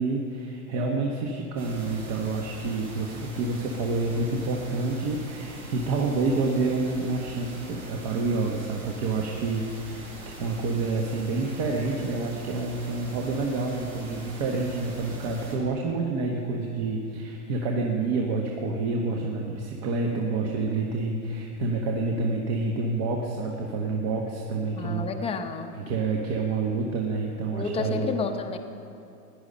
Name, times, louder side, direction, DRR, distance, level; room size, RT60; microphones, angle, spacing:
voice 1, 0.0-25.1 25.9-28.1, right 3 dB, 45° right, 0 dB, 1.5 m, -28 dB
sound 1, 1.6-15.5, right 1 dB, 90° right, 4.0 m, -42 dB
voice 2, 24.7-25.7 27.5-28.6, left 4 dB, 15° left, 5 dB, 0.7 m, -30 dB
16.0 x 10.5 x 5.4 m, 2.7 s
hypercardioid pair, 120°, 45 cm